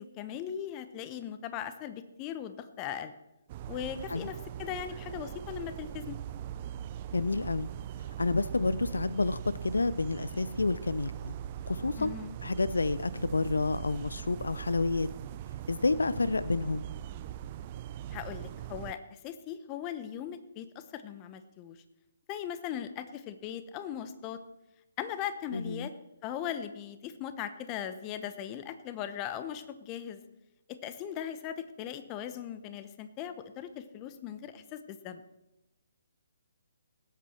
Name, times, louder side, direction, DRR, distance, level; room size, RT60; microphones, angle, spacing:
voice 1, 0.0-3.1 3.7-6.2 12.0-12.4 18.1-21.8 22.3-24.4 25.0-25.9 26.2-30.2 30.7-35.2, left 9 dB, 25° left, 11 dB, 0.8 m, -39 dB
sound 1, 3.5-18.9, right 11 dB, 30° right, 0.4 m, -41 dB
voice 2, 7.1-7.7 8.2-11.3 11.7-12.1 12.4-15.1 15.7-16.9 25.5-25.9, left 3 dB, 70° left, 16 dB, 0.4 m, -29 dB
19.0 x 8.3 x 4.4 m, 0.96 s
figure-of-eight pair, 135°, 0 cm